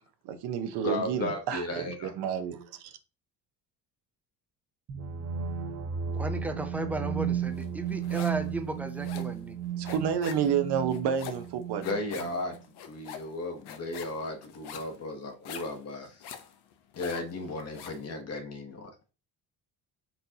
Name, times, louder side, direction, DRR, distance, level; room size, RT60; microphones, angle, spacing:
voice 1, 0.2-3.0 9.8-12.2, right 8 dB, 75° right, 0.8 m, -30 dB
voice 2, 0.8-2.1 11.8-12.6 12.8-16.2 17.0-18.9, left 2 dB, 40° left, 0.8 m, -35 dB
sound 1, 4.9-12.6, right 8 dB, 35° right, 0.7 m, -34 dB
voice 3, 6.1-9.6, right 2 dB, 5° right, 0.3 m, -35 dB
sound 2, 7.6-8.5 8.8-18.1, left 8 dB, 70° left, 0.7 m, -45 dB
4.2 x 4.0 x 2.7 m
cardioid pair, 145°, 40 cm